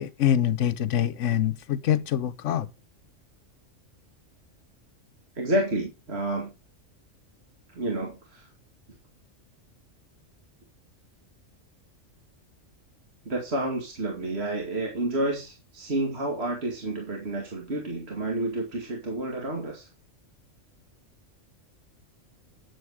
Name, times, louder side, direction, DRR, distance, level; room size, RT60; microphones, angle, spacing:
voice 1, 0.0-2.7, left 10 dB, 75° left, 1.1 m, -25 dB
voice 2, 5.4-6.5 7.7-8.5 13.2-19.9, right 1 dB, 55° right, 2.6 m, -30 dB
9.9 x 7.9 x 4.8 m
omnidirectional pair, 1.3 m